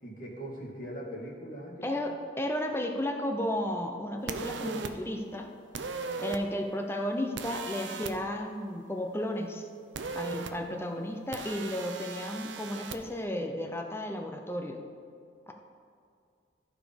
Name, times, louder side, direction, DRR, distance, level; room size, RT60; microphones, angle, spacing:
voice 1, 0.0-2.0, equal, 45° left, -3 dB, 1.9 m, -41 dB
voice 2, 1.8-5.5 6.2-9.7 10.1-14.8 15.5-15.6, left 1 dB, 15° left, 3 dB, 0.6 m, -33 dB
sound 1, 4.3-4.9 5.7-6.4 7.4-8.1 9.9-10.5 11.3-13.0, right 4 dB, 85° right, 0.6 m, -37 dB
14.5 x 5.0 x 5.2 m, 2.3 s
head